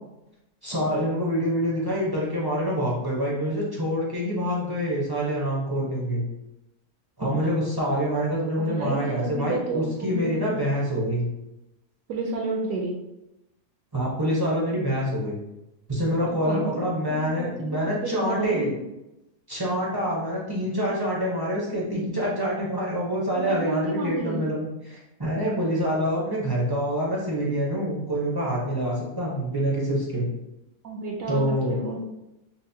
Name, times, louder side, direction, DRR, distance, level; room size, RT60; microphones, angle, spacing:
voice 1, 0.6-6.2 7.2-11.2 13.9-15.4 15.9-18.7 19.5-30.3 31.3-31.7, equal, 30° right, -6 dB, 0.4 m, -26 dB
voice 2, 8.6-10.5 12.1-13.0 16.3-17.5 17.8-18.8 23.4-24.5 30.8-32.0, right 3 dB, 70° right, -1 dB, 1.0 m, -31 dB
5.7 x 2.1 x 2.7 m, 0.93 s
omnidirectional pair, 1.7 m